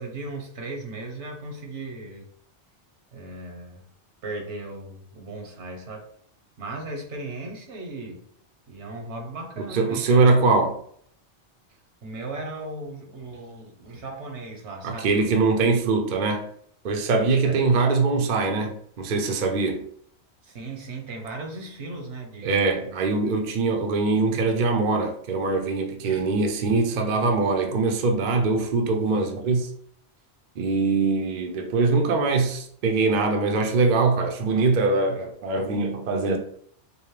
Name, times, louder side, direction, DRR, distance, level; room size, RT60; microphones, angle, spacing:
voice 1, 0.0-2.2 3.1-3.9 4.2-6.1 6.6-8.2 8.7-10.3 12.0-15.4 17.1-17.6 20.4-22.6 26.0-26.3, right 2 dB, 80° right, 1.2 m, -37 dB
voice 2, 9.7-10.8 14.8-16.5 16.8-19.9 22.4-29.7 30.6-36.4, right 3 dB, 55° right, 0.6 m, -22 dB
5.2 x 2.1 x 3.2 m
omnidirectional pair, 1.2 m